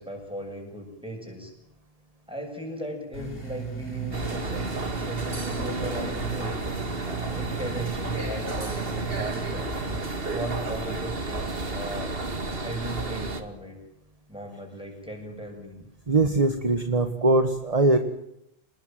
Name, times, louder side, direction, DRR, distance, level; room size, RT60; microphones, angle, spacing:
voice 1, 0.0-1.5 2.3-9.7 10.3-12.2 12.5-13.8 14.3-15.8, right 1 dB, 5° right, 2 dB, 7.8 m, -37 dB
sound 1, 3.1-10.0, right 5 dB, 60° left, 7.5 m, -36 dB
sound 2, 4.1-13.4, right 2 dB, 65° right, 2.5 m, -32 dB
voice 2, 16.1-18.0, right 2 dB, 35° right, 8 dB, 1.7 m, -21 dB
28.0 x 20.5 x 9.2 m, 0.78 s
omnidirectional pair, 1.1 m